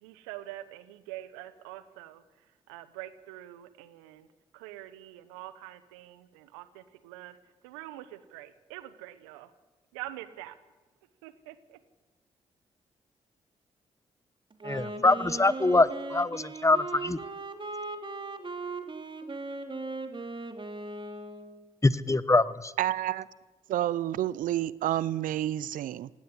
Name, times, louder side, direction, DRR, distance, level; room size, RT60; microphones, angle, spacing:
voice 1, 0.0-4.3 4.5-7.4 7.6-9.5 9.9-10.6 11.2-11.8, right 15 dB, 90° right, 1.1 m, -45 dB
Wind instrument woodwind instrument, 14.5-21.7, right 3 dB, 35° right, 3.1 m, -38 dB
voice 2, 14.6-17.2 21.8-22.7, left 2 dB, 20° left, 1.1 m, -24 dB
voice 3, 22.8-23.3 23.7-26.1, right 13 dB, 70° right, 0.7 m, -29 dB
17.5 x 17.0 x 9.8 m
hypercardioid pair, 40°, 14 cm